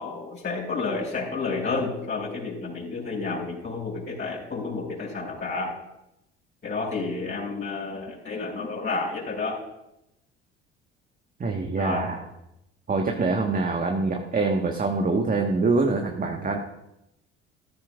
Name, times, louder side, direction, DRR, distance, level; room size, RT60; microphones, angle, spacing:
voice 1, 0.0-5.7 6.6-9.6 11.8-12.1, left 3 dB, 35° left, -9 dB, 5.1 m, -30 dB
voice 2, 11.4-12.2 12.9-16.6, right 3 dB, 25° right, 2 dB, 1.4 m, -25 dB
14.0 x 13.5 x 2.4 m, 0.86 s
hypercardioid pair, 60°, 33 cm